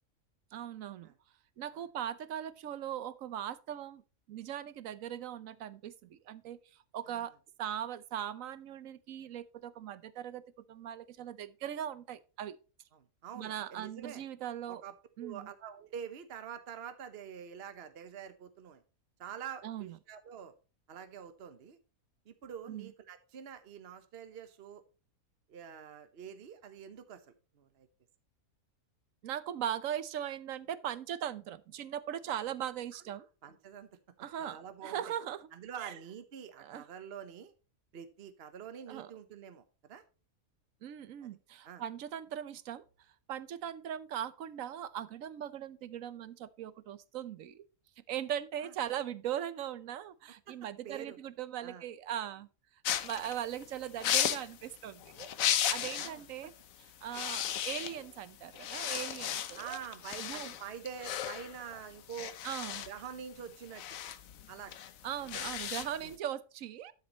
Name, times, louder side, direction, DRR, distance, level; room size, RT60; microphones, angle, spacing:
voice 1, 0.5-1.1 1.6-4.0 4.3-6.6 6.9-7.3 7.6-10.4 10.7-12.6 13.3-14.8 15.2-15.5 19.6-20.0 22.7-22.9 29.2-33.3 34.2-34.6 34.8-35.5 35.8-35.9 36.6-36.9 38.9-39.1 40.8-42.8 43.3-47.6 48.1-52.5 53.0-55.3 55.7-56.5 57.0-59.8 60.2-60.5 62.4-62.9 65.0-66.9, right 10 dB, 70° right, 1.1 m, -39 dB
voice 2, 12.9-14.2 14.7-14.9 15.2-18.8 19.2-20.5 20.9-21.8 22.3-24.8 25.5-27.2 27.6-27.9 33.1-33.9 34.4-35.0 35.5-37.5 37.9-40.0 41.2-41.4 41.6-41.8 48.6-48.7 50.5-50.6 50.8-51.2 51.6-51.8 56.0-56.2 59.6-62.3 62.9-63.8 64.5-64.8 65.3-65.5 66.0-66.1, right 8 dB, 50° right, 1.1 m, -46 dB
sound 1, 52.8-56.2 56.5-56.7 57.0-58.2 58.5-66.1, left 10 dB, 75° left, 1.2 m, -35 dB
12.0 x 7.1 x 2.9 m
omnidirectional pair, 1.5 m